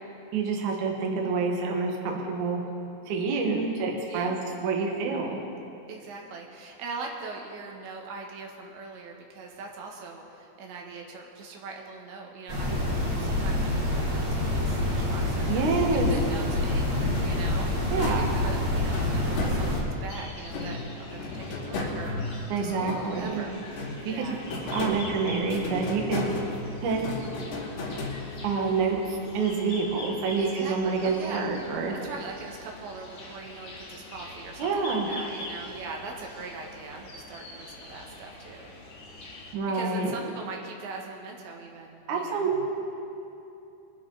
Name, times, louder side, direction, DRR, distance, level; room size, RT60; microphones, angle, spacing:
voice 1, 0.3-2.6 3.1-4.4 4.6-5.4 15.5-16.1 17.9-18.2 22.5-23.4 24.1-24.4 24.7-26.3 26.8-27.1 28.4-29.0 29.3-31.9 34.6-35.1 39.5-40.1 42.1-42.7, right 4 dB, 60° right, 0 dB, 2.3 m, -27 dB
voice 2, 3.1-3.5 4.1-4.4 5.9-12.8 13.2-15.6 16.1-24.4 30.4-31.5 32.0-38.7 39.7-42.5, right 4 dB, 85° right, 0 dB, 3.7 m, -41 dB
sound 1, 12.5-19.8, left 1 dB, 35° right, 2.1 m, -27 dB
sound 2, 17.0-20.0 20.5-23.3 23.7-28.6, left 2 dB, 85° left, 4.7 m, -35 dB
sound 3, 20.1-39.5, left 2 dB, 45° left, 2.2 m, -44 dB
22.5 x 11.0 x 3.9 m, 2.8 s
omnidirectional pair, 5.0 m